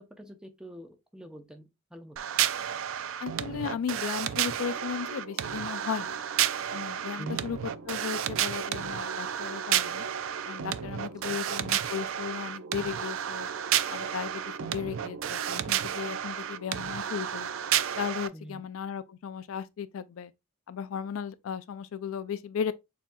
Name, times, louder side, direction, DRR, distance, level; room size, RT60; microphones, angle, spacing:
voice 1, 0.0-2.2 7.2-7.4 11.2-11.4 18.3-18.7, equal, 5° right, 0.6 m, -45 dB
sound 1, 2.2-18.3, right 10 dB, 70° right, 0.3 m, -31 dB
voice 2, 3.2-6.1 6.7-10.0 10.5-13.5 13.9-17.5 18.0-20.3 20.7-22.7, left 7 dB, 75° left, 0.3 m, -36 dB
sound 2, 4.4-18.1, right 3 dB, 85° right, 0.7 m, -46 dB
6.8 x 2.8 x 2.2 m
head